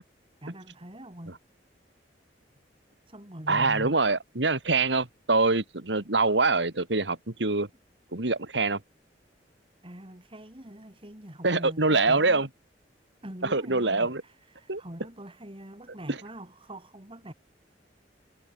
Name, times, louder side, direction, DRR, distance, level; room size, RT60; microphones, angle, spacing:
voice 1, 0.4-1.4 3.1-4.0 9.8-12.5 13.2-17.3, right 1 dB, 30° right, 4.6 m, -43 dB
voice 2, 3.5-7.7 8.1-8.8 11.4-12.5 13.5-14.2 14.7-14.8, right 3 dB, 70° right, 2.4 m, -24 dB
head